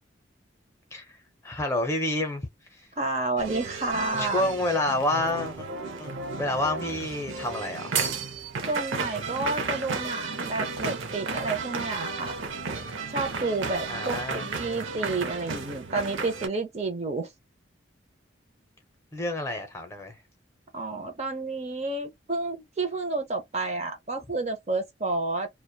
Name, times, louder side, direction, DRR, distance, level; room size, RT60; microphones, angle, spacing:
voice 1, 1.4-2.5 4.2-5.7 6.0-8.0 13.9-14.5 19.1-20.2, left 1 dB, 15° left, 0.6 m, -29 dB
voice 2, 3.0-4.4 8.7-12.3 13.1-17.3 20.7-25.5, right 3 dB, 35° right, 0.6 m, -30 dB
sound 1, 3.4-16.5, right 4 dB, 85° right, 0.6 m, -33 dB
2.8 x 2.2 x 2.2 m
head